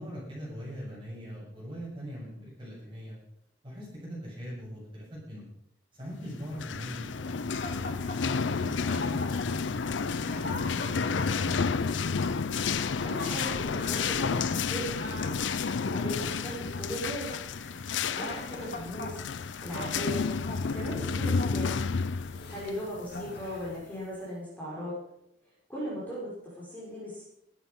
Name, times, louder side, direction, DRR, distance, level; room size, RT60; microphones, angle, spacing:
voice 1, 0.0-3.2 3.6-5.4 6.0-7.9 8.5-11.8, equal, 25° right, -5 dB, 7.8 m, -41 dB
sound 1, 6.4-23.8, left 5 dB, 90° left, 0.6 m, -31 dB
sound 2, 7.5-22.7 23.1-23.8, left 2 dB, 60° left, 2.3 m, -42 dB
voice 2, 13.0-15.4 15.8-17.3 17.7-19.2 19.6-20.2 20.6-21.7 22.5-24.9 25.7-27.2, equal, 10° left, -7 dB, 5.9 m, -38 dB
15.5 x 12.0 x 5.4 m, 0.78 s
head